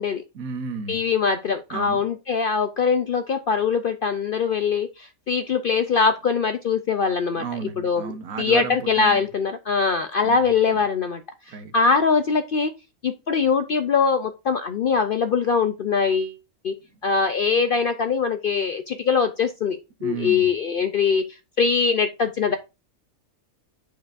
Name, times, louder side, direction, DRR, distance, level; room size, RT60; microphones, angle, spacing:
voice 1, 0.3-1.0 1.7-2.0 7.3-9.2 10.2-10.4 10.7-10.8 11.5-11.7 20.0-20.5, right 5 dB, 70° right, 1.4 m, -33 dB
voice 2, 0.9-7.4 7.8-8.1 8.4-11.2 11.5-12.7 13.0-16.4 16.6-16.7 17.0-21.2 21.6-22.6, left 5 dB, 70° left, 0.5 m, -22 dB
8.6 x 6.9 x 2.5 m
omnidirectional pair, 1.5 m